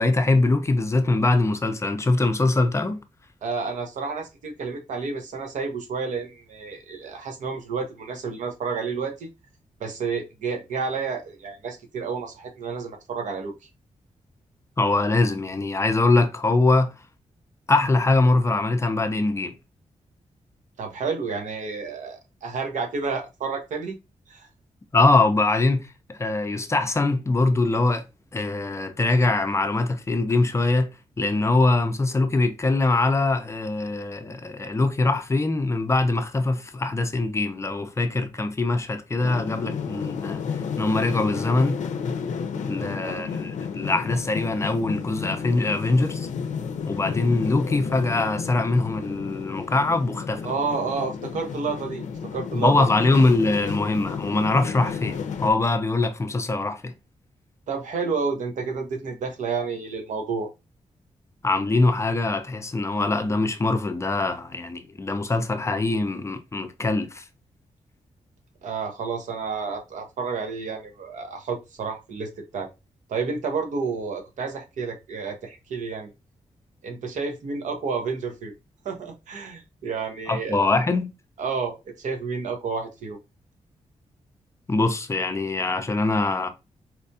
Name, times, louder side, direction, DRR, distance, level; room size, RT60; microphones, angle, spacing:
voice 1, 0.0-3.0 14.8-16.9 17.7-19.5 24.9-28.0 28.3-41.8 42.7-46.3 46.9-50.5 52.5-56.9 61.4-67.2 80.3-81.1 84.7-86.5, left 2 dB, 25° left, 0.4 m, -23 dB
voice 2, 3.4-9.3 9.8-13.5 20.8-24.0 24.3-24.5 43.0-43.3 50.4-52.1 52.3-52.9 57.7-60.5 68.6-72.7 73.1-76.1 76.8-78.5 78.8-80.7 81.4-83.2, right 5 dB, 90° right, 0.7 m, -30 dB
sound 1, 39.2-55.5, left 6 dB, 80° left, 0.4 m, -32 dB
4.2 x 2.2 x 2.6 m
wide cardioid pair, 125°, 12 cm